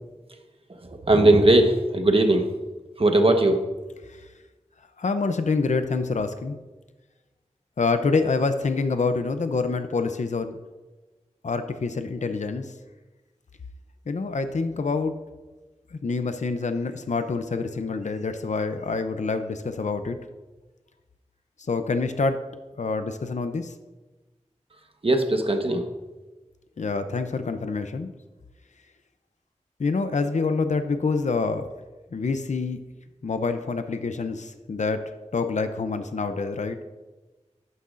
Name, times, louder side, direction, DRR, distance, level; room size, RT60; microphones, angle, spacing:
voice 1, 0.8-2.4 3.0-3.6 25.0-25.8, right 2 dB, 50° right, 5 dB, 1.1 m, -19 dB
voice 2, 5.0-6.6 7.8-10.6 11.4-12.7 14.1-15.1 15.9-20.2 21.7-22.4 22.8-23.7 26.8-28.1 29.8-31.7 32.1-32.8 33.2-35.0 35.3-36.8, left 4 dB, 80° left, 9 dB, 0.6 m, -26 dB
11.5 x 9.5 x 2.5 m, 1.2 s
wide cardioid pair, 55°, 12 cm